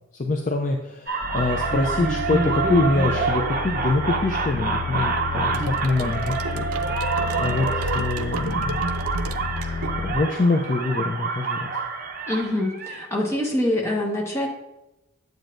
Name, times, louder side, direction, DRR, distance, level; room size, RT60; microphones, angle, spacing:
voice 1, 0.1-6.7 7.4-8.9 10.0-11.7, left 3 dB, 35° left, 3 dB, 0.5 m, -25 dB
sound 1, 1.1-13.0, right 4 dB, 40° right, 0.8 m, -27 dB
sound 2, 1.2-10.1, left 5 dB, 75° left, 0.8 m, -32 dB
sound 3, 5.5-10.4, right 3 dB, 85° right, 0.5 m, -34 dB
voice 2, 12.3-14.5, left 1 dB, 10° left, -2 dB, 1.2 m, -25 dB
8.9 x 7.9 x 2.6 m, 0.98 s
head